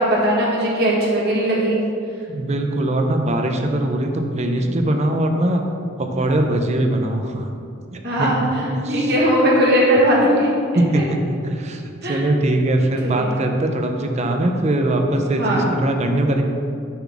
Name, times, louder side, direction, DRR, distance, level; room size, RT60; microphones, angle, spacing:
voice 1, 0.0-1.8 8.0-10.5 10.9-11.0 12.0-12.2 13.0-13.3 15.4-15.7, equal, 55° right, -4 dB, 1.5 m, -18 dB
voice 2, 2.3-5.6 6.0-7.5 7.9-9.1 10.7-16.4, right 1 dB, 35° right, 4 dB, 0.6 m, -21 dB
6.9 x 4.0 x 6.1 m, 2.5 s
head